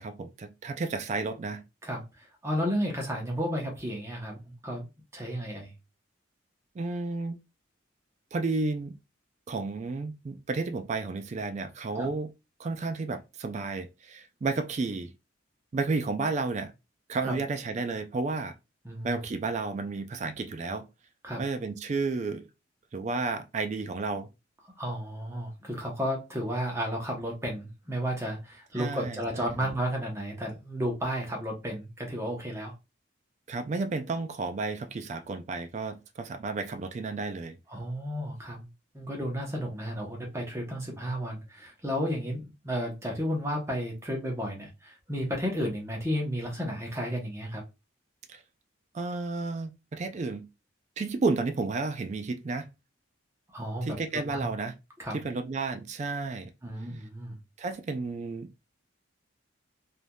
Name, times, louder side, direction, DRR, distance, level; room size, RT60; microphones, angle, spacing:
voice 1, 0.0-1.6 6.8-7.4 8.3-9.0 9.5-12.3 12.6-15.1 15.7-16.7 17.1-18.5 19.0-20.9 21.4-22.5 22.9-24.3 28.8-29.7 33.5-37.6 48.3-48.4 48.9-50.4 51.0-52.7 53.8-54.7 55.1-56.5 57.6-58.5, right 3 dB, 35° right, 0.3 m, -32 dB
voice 2, 1.8-4.9 5.1-5.7 11.9-12.1 17.2-17.4 18.8-19.2 21.2-21.4 24.8-32.7 37.7-38.7 38.9-47.6 53.5-54.5 55.0-55.2 56.6-57.4, equal, 15° right, 0.8 m, -33 dB
3.3 x 2.6 x 2.2 m
head